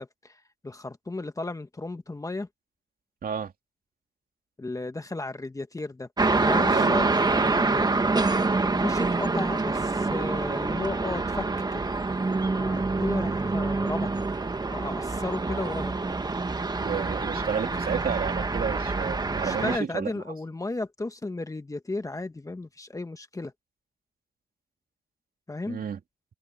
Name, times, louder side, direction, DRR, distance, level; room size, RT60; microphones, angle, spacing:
voice 1, 0.0-2.5 4.6-6.1 6.5-7.9 8.8-11.4 11.7-11.9 12.4-14.2 14.7-15.9 19.4-23.5 25.5-25.8, left 2 dB, 15° left, 1.5 m, -34 dB
voice 2, 3.2-3.5 6.7-7.1 16.8-20.1 25.7-26.0, right 7 dB, 45° right, 2.7 m, -31 dB
sound 1, 6.2-19.8, right 3 dB, 20° right, 1.6 m, -26 dB
cardioid pair, 90°, 20 cm